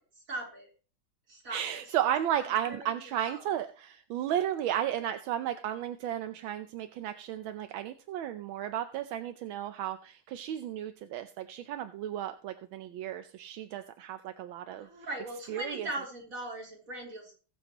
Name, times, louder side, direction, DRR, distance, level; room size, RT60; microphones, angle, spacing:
voice 1, 0.3-0.7 1.3-1.8 2.7-3.4 14.7-17.3, right 1 dB, 40° right, -2 dB, 4.3 m, -40 dB
voice 2, 1.5-14.9 15.5-15.9, right 11 dB, 80° right, 9 dB, 1.5 m, -34 dB
20.5 x 7.1 x 3.0 m, 0.38 s
omnidirectional pair, 2.2 m